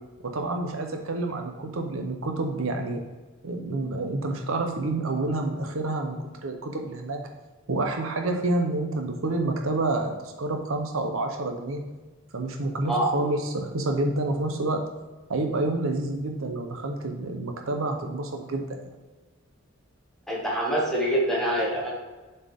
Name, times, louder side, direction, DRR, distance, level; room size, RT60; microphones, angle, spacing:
voice 1, 0.2-3.0 3.4-7.2 7.7-11.8 12.3-14.8 15.3-18.9, right 2 dB, 70° right, 4 dB, 0.7 m, -28 dB
voice 2, 20.3-21.9, right 1 dB, ahead, -5 dB, 1.6 m, -25 dB
7.2 x 4.4 x 3.5 m, 1.3 s
head